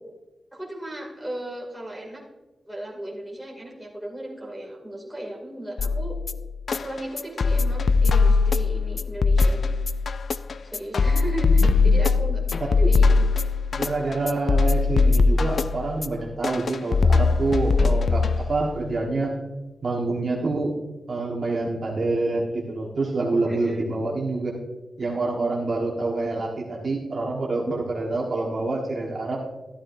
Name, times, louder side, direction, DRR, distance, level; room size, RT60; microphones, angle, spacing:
voice 1, 0.5-2.2 2.7-6.2 6.8-9.6 10.6-13.3 23.4-23.9, right 1 dB, ahead, -2 dB, 2.4 m, -36 dB
sound 1, 5.8-18.8, left 4 dB, 55° left, 0.4 m, -21 dB
voice 2, 12.6-12.9 13.8-19.3 19.8-20.7 21.1-24.6 25.0-29.4, right 2 dB, 45° right, -3 dB, 1.4 m, -27 dB
13.0 x 12.0 x 2.6 m, 1.1 s
wide cardioid pair, 160°, 0 cm